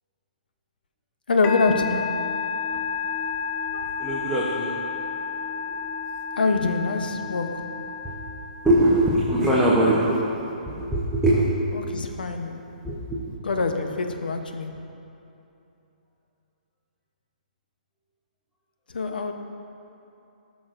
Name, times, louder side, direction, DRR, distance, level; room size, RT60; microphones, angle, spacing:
voice 1, 1.3-2.1 6.4-7.6 11.7-12.6 13.4-14.8 18.9-19.3, left 3 dB, 85° left, 5 dB, 0.7 m, -25 dB
Musical instrument, 1.4-9.1, left 6 dB, 20° left, 0.5 m, -31 dB
voice 2, 4.0-4.8 5.7-5.8 8.6-11.5 11.8-12.0 12.8-13.3, right 1 dB, 5° right, -8 dB, 0.8 m, -22 dB
13.0 x 6.2 x 2.5 m, 2.8 s
hypercardioid pair, 150°, 5 cm